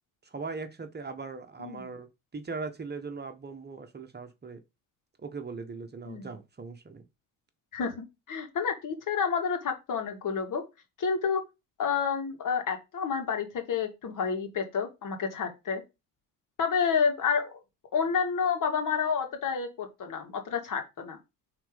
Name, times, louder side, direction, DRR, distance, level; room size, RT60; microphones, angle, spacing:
voice 1, 0.2-2.1 2.3-4.6 5.2-7.0, right 4 dB, 25° right, 1.3 m, -39 dB
voice 2, 7.7-10.6 11.0-11.4 11.8-15.8 16.6-17.6 17.9-21.2, left 6 dB, 55° left, 2.6 m, -29 dB
5.9 x 4.1 x 5.3 m
supercardioid pair, 80°, 38 cm